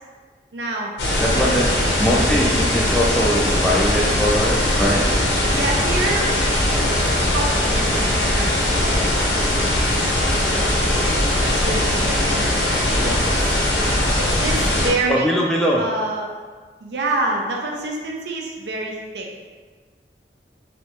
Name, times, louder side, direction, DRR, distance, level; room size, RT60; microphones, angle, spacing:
voice 1, 0.5-0.9 1.3-2.0 5.5-9.8 10.4-13.6 14.2-15.3 15.8-16.3 16.8-19.4, right 2 dB, 75° right, -1 dB, 0.5 m, -28 dB
sound 1, 1.0-14.9, left 1 dB, 75° left, 0.7 m, -20 dB
voice 2, 1.2-1.7 2.0-5.0 11.4-11.6 15.1-15.8, equal, 5° left, -3 dB, 0.3 m, -21 dB
3.2 x 2.8 x 2.8 m, 1.4 s
head